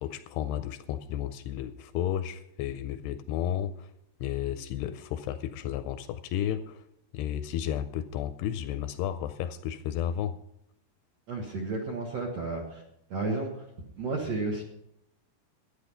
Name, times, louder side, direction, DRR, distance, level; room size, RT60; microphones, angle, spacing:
voice 1, 0.0-3.9 4.2-6.8 7.1-10.3, left 10 dB, 80° left, 11 dB, 2.4 m, -32 dB
voice 2, 11.3-12.8 13.1-13.6 14.0-14.6, right 3 dB, 65° right, -1 dB, 1.6 m, -32 dB
12.5 x 9.4 x 5.5 m, 0.79 s
omnidirectional pair, 5.0 m